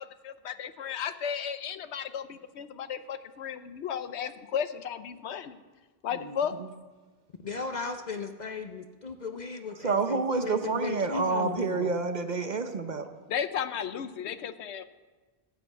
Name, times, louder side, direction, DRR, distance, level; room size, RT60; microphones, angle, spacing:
voice 1, 0.0-5.6 6.0-6.6 13.3-14.8, left 8 dB, 90° left, 11 dB, 1.0 m, -34 dB
voice 2, 7.4-11.9, left 4 dB, 45° left, 6 dB, 0.8 m, -36 dB
voice 3, 9.8-13.1, right 4 dB, 50° right, 8 dB, 0.8 m, -28 dB
13.5 x 7.6 x 8.0 m, 1.3 s
omnidirectional pair, 1.1 m